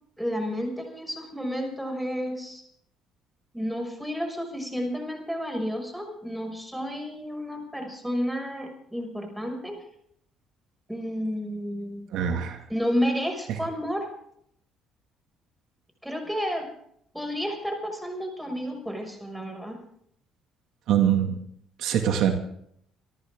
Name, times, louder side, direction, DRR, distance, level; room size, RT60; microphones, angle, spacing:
voice 1, 0.2-2.6 3.5-9.8 10.9-12.3 12.7-14.1 16.0-16.7 17.1-19.8, equal, 5° right, 4 dB, 6.2 m, -31 dB
voice 2, 12.1-12.6 20.9-21.3 21.8-22.3, right 9 dB, 75° right, 4 dB, 2.3 m, -23 dB
26.5 x 13.5 x 3.8 m, 0.69 s
supercardioid pair, 85°, 0 cm